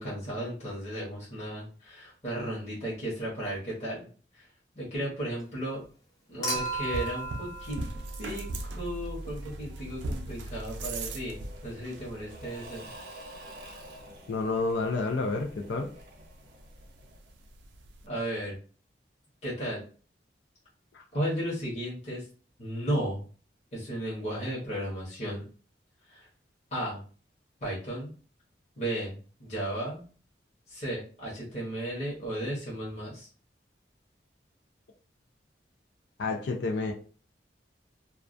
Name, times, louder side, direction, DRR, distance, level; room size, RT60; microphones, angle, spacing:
voice 1, 0.0-4.1 4.3-4.4 4.7-5.8 6.3-7.8 8.2-12.9 18.0-18.6 19.4-19.8 21.1-22.3 22.6-23.2 23.7-25.4 26.1-26.3 26.7-27.0 27.6-28.1 28.8-30.0 30.7-33.3, right 1 dB, 35° left, -6 dB, 0.9 m, -34 dB
Human group actions / Chink clink / Liquid, 6.4-8.8 10.3-10.4, right 2 dB, 20° left, 0.5 m, -35 dB
sound 1, 6.5-18.1, right 2 dB, 85° right, 0.4 m, -41 dB
Engine / Mechanisms / Drill, 10.7-17.4, equal, 55° right, 0.8 m, -49 dB
voice 2, 14.3-15.9 20.9-21.0 36.2-36.9, left 3 dB, 80° left, 2 dB, 0.4 m, -29 dB
2.2 x 2.2 x 2.4 m, 0.39 s
head